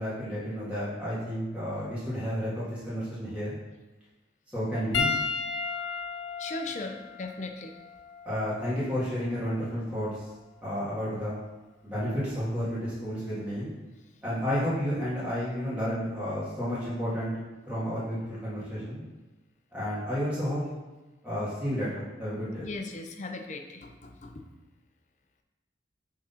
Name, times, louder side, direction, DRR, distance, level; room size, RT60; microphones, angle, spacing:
voice 1, 0.0-3.6 4.5-5.1 8.3-10.1 10.6-11.4 11.8-13.7 14.2-17.3 17.7-19.0 19.7-20.6 21.2-22.6, equal, 5° right, -11 dB, 2.0 m, -31 dB
Piano, 4.9-9.6 10.5-10.7 12.7-12.8, left 5 dB, 90° left, 0.7 m, -34 dB
voice 2, 6.4-7.7 22.6-24.4, left 2 dB, 40° left, 4 dB, 0.6 m, -38 dB
6.3 x 3.7 x 5.6 m, 1.1 s
head